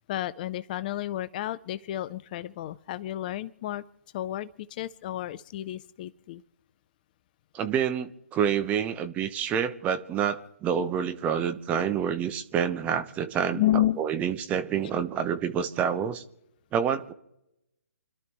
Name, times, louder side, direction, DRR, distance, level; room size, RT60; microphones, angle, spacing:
voice 1, 0.1-3.8 4.1-6.4 13.5-14.0, left 13 dB, 35° left, 15 dB, 0.5 m, -31 dB
voice 2, 7.5-16.2 16.7-17.1, right 8 dB, 15° right, 8 dB, 1.0 m, -28 dB
29.5 x 12.5 x 3.1 m, 0.84 s
figure-of-eight pair, 140°, 8 cm